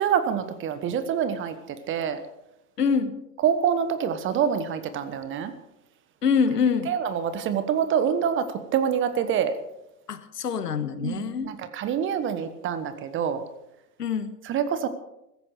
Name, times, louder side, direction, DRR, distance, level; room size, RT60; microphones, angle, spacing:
voice 1, 0.0-2.2 3.4-5.5 6.9-9.6 11.0-13.4 14.4-14.9, right 8 dB, 25° right, 11 dB, 1.2 m, -26 dB
voice 2, 2.8-3.2 6.2-6.9 10.1-11.5 14.0-14.3, left 6 dB, 75° left, 11 dB, 1.6 m, -25 dB
16.0 x 14.5 x 4.9 m, 0.86 s
figure-of-eight pair, 105°, 48 cm